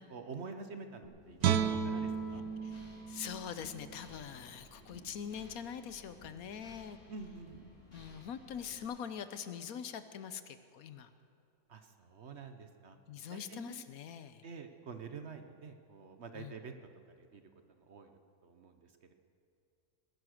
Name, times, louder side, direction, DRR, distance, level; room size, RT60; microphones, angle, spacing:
voice 1, 0.0-2.4 7.1-7.6 11.7-13.0 13.3-13.8 14.4-16.7 17.2-17.4 17.8-19.1, right 5 dB, 50° right, 7 dB, 1.1 m, -48 dB
sound 1, 1.0-8.8, left 1 dB, 50° left, 4.1 m, -57 dB
Guitar, 1.4-4.6 5.0-5.1, right 8 dB, 85° right, 1.3 m, -34 dB
voice 2, 3.1-7.0 7.9-11.1 13.1-14.4 16.3-16.5, left 8 dB, 70° left, 11 dB, 1.2 m, -43 dB
20.5 x 11.0 x 6.5 m, 2.5 s
omnidirectional pair, 1.6 m